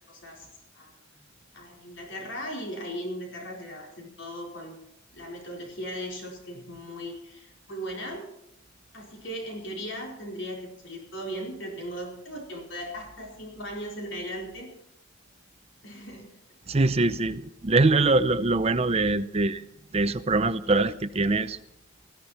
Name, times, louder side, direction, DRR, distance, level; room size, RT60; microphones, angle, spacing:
voice 1, 0.1-0.5 0.7-1.3 1.5-4.8 5.1-8.3 8.9-14.7 15.8-16.4, equal, 65° left, 0 dB, 4.5 m, -38 dB
voice 2, 16.7-19.6 19.9-21.6, right 2 dB, 30° right, 12 dB, 0.6 m, -23 dB
20.0 x 15.0 x 4.3 m, 0.80 s
head